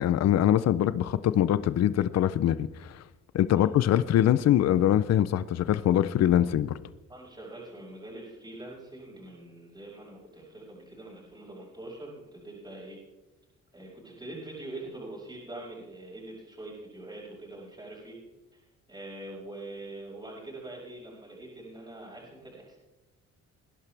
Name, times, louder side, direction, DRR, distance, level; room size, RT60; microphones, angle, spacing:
voice 1, 0.0-3.0 3.3-6.8, left 11 dB, 60° left, 15 dB, 0.6 m, -23 dB
voice 2, 7.1-13.0 13.7-18.2 18.5-18.6 18.9-22.8, right 2 dB, 15° right, -9 dB, 5.5 m, -43 dB
20.5 x 11.0 x 3.4 m, 1.1 s
cardioid pair, 90°, 30 cm